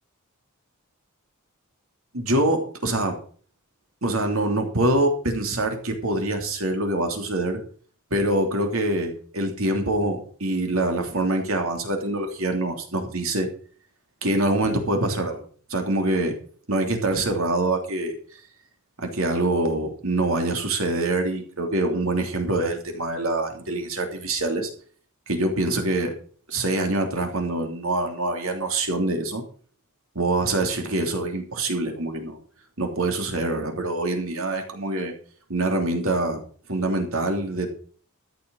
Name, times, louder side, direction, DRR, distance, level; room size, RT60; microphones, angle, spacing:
voice 1, 2.1-3.2 4.0-7.6 8.1-13.5 14.2-15.4 15.7-16.3 16.7-18.2 19.0-24.7 25.3-26.1 26.5-29.4 30.1-32.4 32.8-35.1 35.5-36.4 36.7-37.7, right 2 dB, 65° right, 4 dB, 3.1 m, -25 dB
14.0 x 6.9 x 6.4 m, 0.44 s
head